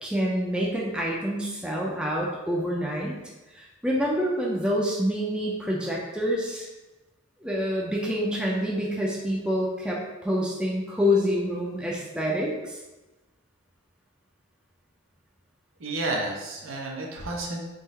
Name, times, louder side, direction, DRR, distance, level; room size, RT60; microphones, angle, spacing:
voice 1, 0.0-3.1 3.6-6.7 7.4-12.8, equal, 5° right, -3 dB, 0.5 m, -27 dB
voice 2, 15.8-17.7, right 2 dB, 85° right, -1 dB, 0.8 m, -31 dB
3.7 x 2.5 x 4.1 m, 1.1 s
head